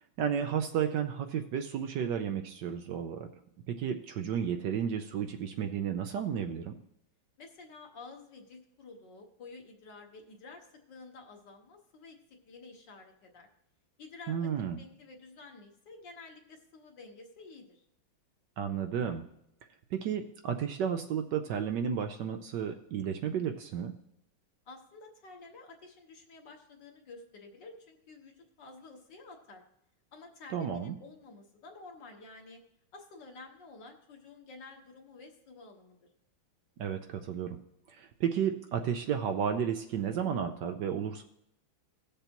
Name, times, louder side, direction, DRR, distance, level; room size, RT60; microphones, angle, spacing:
voice 1, 0.2-3.3 3.7-6.7 14.3-14.8 18.6-19.3 19.9-24.0 30.5-31.0 36.8-37.6 37.9-41.2, right 8 dB, 70° right, 7 dB, 1.1 m, -32 dB
voice 2, 7.4-12.2 12.4-13.5 14.0-14.5 14.8-17.8 24.7-29.6 30.1-32.6 32.9-36.0, left 3 dB, 60° left, 2 dB, 2.0 m, -51 dB
17.5 x 6.8 x 2.9 m, 0.77 s
omnidirectional pair, 2.2 m